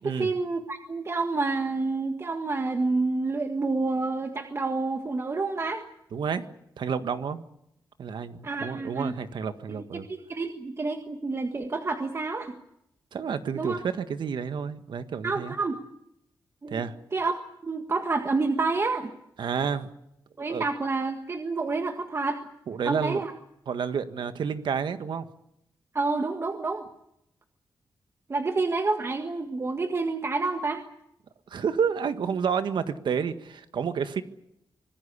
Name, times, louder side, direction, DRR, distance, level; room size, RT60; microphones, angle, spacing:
voice 1, 0.0-5.8 8.4-9.1 9.7-12.5 13.6-13.8 15.2-15.8 16.6-16.8 17.1-19.1 20.4-22.4 22.8-23.3 25.9-26.8 28.3-30.8, right 3 dB, 35° right, 5 dB, 1.7 m, -28 dB
voice 2, 6.1-6.4 6.8-7.4 8.0-10.1 13.1-15.5 16.7-16.9 19.4-19.9 20.5-20.6 22.7-23.2 23.7-25.3 31.5-34.2, right 6 dB, 80° right, 10 dB, 1.7 m, -30 dB
25.5 x 19.5 x 8.4 m, 0.80 s
wide cardioid pair, 135°, 8 cm